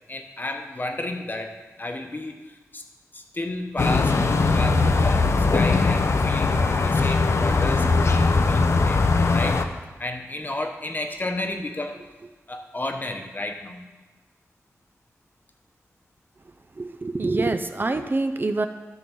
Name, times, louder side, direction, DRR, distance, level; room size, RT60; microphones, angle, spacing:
voice 1, 0.1-2.8 3.1-9.0 9.3-9.6 10.0-12.0 12.5-13.8, left 2 dB, 35° left, 4 dB, 1.1 m, -32 dB
sound 1, 3.8-9.6, left 3 dB, 60° left, 0.7 m, -20 dB
voice 2, 16.8-18.7, right 3 dB, 40° right, 8 dB, 0.5 m, -25 dB
11.0 x 3.9 x 7.0 m, 1.2 s
cardioid pair, 60°, 5 cm